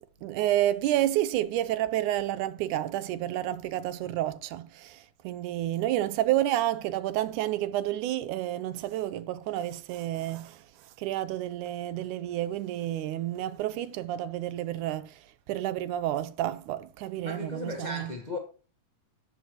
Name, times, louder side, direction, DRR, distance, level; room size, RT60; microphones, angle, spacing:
voice 1, 0.2-5.0 5.2-10.6 11.0-15.1 15.5-18.1, right 13 dB, 85° right, 2.1 m, -30 dB
voice 2, 17.2-18.4, left 1 dB, 50° left, 0.5 m, -36 dB
12.5 x 8.1 x 3.0 m
omnidirectional pair, 3.6 m